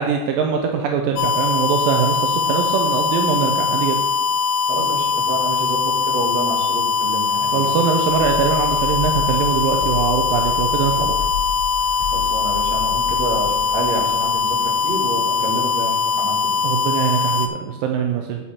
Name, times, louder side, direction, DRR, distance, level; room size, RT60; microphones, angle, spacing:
voice 1, 0.0-4.0 7.5-11.1 16.6-18.4, right 7 dB, 80° right, 3 dB, 2.4 m, -22 dB
sound 1, 1.2-17.5, left 5 dB, 85° left, 2.3 m, -21 dB
voice 2, 4.7-7.7 12.1-16.6, right 2 dB, 55° right, -2 dB, 3.0 m, -28 dB
sound 2, 8.1-15.3, left 9 dB, 50° left, 2.1 m, -32 dB
9.6 x 7.2 x 4.3 m, 1.1 s
omnidirectional pair, 4.0 m